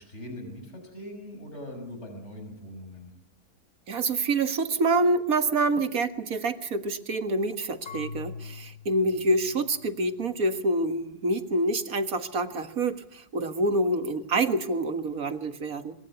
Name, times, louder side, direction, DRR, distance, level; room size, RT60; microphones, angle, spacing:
voice 1, 0.0-3.1, left 1 dB, 45° left, 5 dB, 6.1 m, -41 dB
voice 2, 3.9-16.0, right 2 dB, 65° right, 9 dB, 2.0 m, -27 dB
Marimba xylophone / Wood, 7.9-10.7, left 5 dB, 60° left, 3.4 m, -43 dB
25.0 x 24.5 x 8.1 m, 0.71 s
omnidirectional pair, 1.6 m